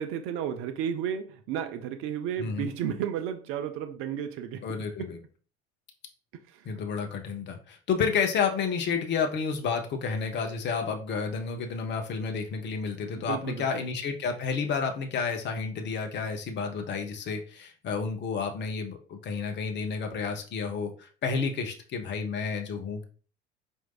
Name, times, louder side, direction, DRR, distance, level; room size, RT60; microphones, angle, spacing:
voice 1, 0.0-4.6 6.5-6.7 13.2-13.8, right 8 dB, 40° right, 0.4 m, -33 dB
voice 2, 4.6-5.2 6.6-23.0, left 5 dB, 35° left, 0.6 m, -30 dB
4.4 x 2.6 x 2.3 m
figure-of-eight pair, 65°, 33 cm